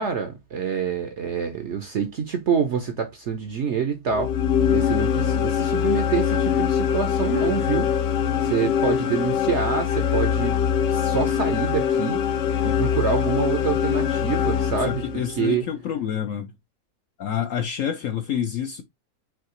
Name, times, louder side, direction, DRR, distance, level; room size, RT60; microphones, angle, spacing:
voice 1, 0.0-4.4 4.7-7.9 8.4-10.6 10.9-12.2 12.6-15.6, right 6 dB, 60° right, 0.8 m, -26 dB
sound 1, 4.1-15.4, left 8 dB, 90° left, 1.3 m, -23 dB
voice 2, 14.8-16.5 17.2-18.8, left 9 dB, 65° left, 0.8 m, -28 dB
5.7 x 2.8 x 3.0 m
omnidirectional pair, 1.8 m